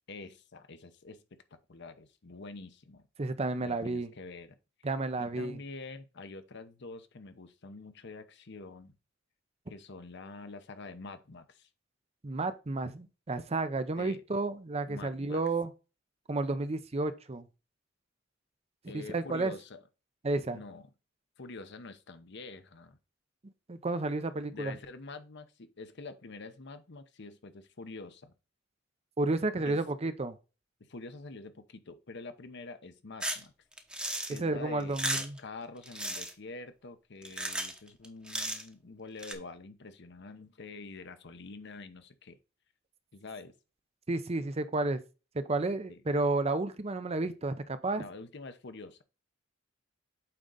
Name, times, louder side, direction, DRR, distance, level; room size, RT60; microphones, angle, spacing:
voice 1, 0.1-1.2 1.5-3.1 3.6-4.6 5.2-9.0 9.7-11.7 14.0-14.2 14.9-15.4 18.8-19.8 20.5-20.9 21.4-23.0 24.5-28.3 29.6-29.8 30.8-33.5 34.3-42.4 43.1-43.5 45.9-46.0 47.9-49.0, left 3 dB, 60° left, 0.9 m, -46 dB
voice 2, 3.2-4.1 4.8-5.5 12.2-15.7 16.3-17.5 18.9-19.5 20.2-20.6 23.7-24.8 29.2-30.4 34.4-35.4 44.1-45.0 45.3-48.1, right 2 dB, 30° right, 0.6 m, -31 dB
sound 1, 33.2-33.4 33.8-34.4 34.8-35.4 35.9-36.3 37.2-37.8 38.0-38.7 39.2-39.3, right 1 dB, 5° right, 0.9 m, -34 dB
8.7 x 3.8 x 3.9 m
head